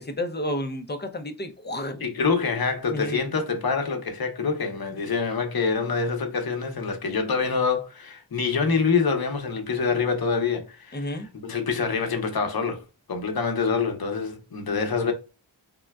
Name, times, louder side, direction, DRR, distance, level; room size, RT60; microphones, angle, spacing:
voice 1, 0.0-2.0 2.9-3.2 10.9-11.3, left 1 dB, 25° left, 0.6 m, -31 dB
voice 2, 2.0-12.8 13.1-15.1, left 5 dB, 55° left, 0.8 m, -26 dB
3.6 x 2.1 x 2.3 m
wide cardioid pair, 45°, 45 cm